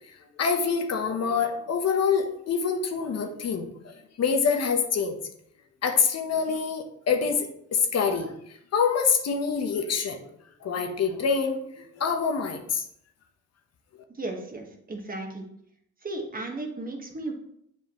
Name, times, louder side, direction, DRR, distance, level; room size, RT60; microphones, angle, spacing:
voice 1, 0.4-5.2 5.8-8.4 8.7-10.2 10.6-12.8, left 6 dB, 55° left, 5 dB, 1.0 m, -26 dB
voice 2, 14.2-15.4 16.0-17.3, right 2 dB, 30° right, 2 dB, 1.4 m, -35 dB
7.4 x 5.3 x 3.0 m, 0.72 s
cardioid pair, 90°, 30 cm